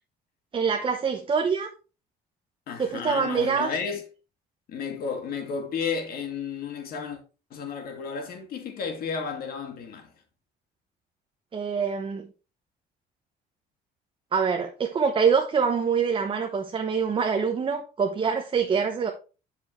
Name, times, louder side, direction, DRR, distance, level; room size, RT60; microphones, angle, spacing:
voice 1, 0.5-1.7 2.8-3.7 11.5-12.3 14.3-19.1, right 6 dB, 30° right, 1.0 m, -25 dB
voice 2, 2.7-4.0 4.7-7.2 7.5-10.1, left 5 dB, 60° left, 2.2 m, -32 dB
7.7 x 6.7 x 3.2 m
cardioid pair, 110°, 17 cm